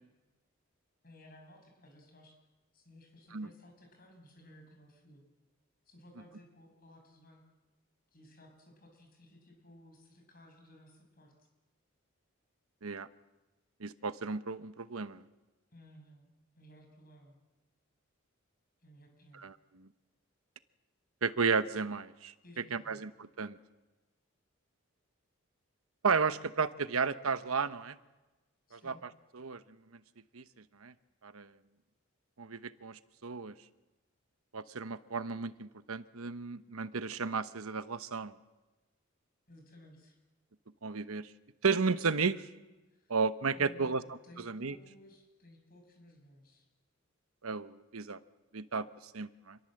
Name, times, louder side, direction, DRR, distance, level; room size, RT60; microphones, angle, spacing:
voice 1, 1.0-2.4 2.7-5.2 5.9-7.4 8.1-11.5 15.7-17.4 18.8-19.4 22.4-23.0 28.7-29.0 39.5-40.2 42.9-43.2 43.5-46.7, left 1 dB, 45° left, 2 dB, 6.9 m, -57 dB
voice 2, 13.8-15.3 19.3-19.9 21.2-23.6 26.0-28.0 28.7-29.6 30.3-30.4 30.8-30.9 31.2-31.5 32.4-33.5 34.5-38.3 40.8-41.3 41.6-42.5 43.1-44.0 44.4-44.7 47.4-48.2 48.5-49.6, right 5 dB, 85° right, 13 dB, 1.0 m, -33 dB
27.0 x 22.5 x 7.8 m, 1.1 s
head